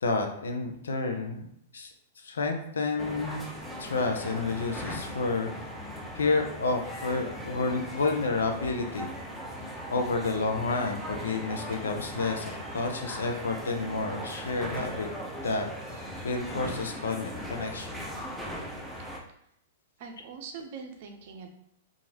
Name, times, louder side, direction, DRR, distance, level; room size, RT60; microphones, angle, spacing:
voice 1, 0.0-1.5 1.7-3.5 3.8-5.5 6.1-9.1 9.9-15.1 15.4-15.7 15.9-17.9, left 3 dB, 80° left, 4 dB, 0.4 m, -30 dB
sound 1, 3.0-19.2, equal, ahead, 0.5 m, -39 dB
voice 2, 20.0-21.5, right 5 dB, 55° right, 4 dB, 0.5 m, -42 dB
2.9 x 2.4 x 2.8 m, 0.72 s
hypercardioid pair, 110°, 0 cm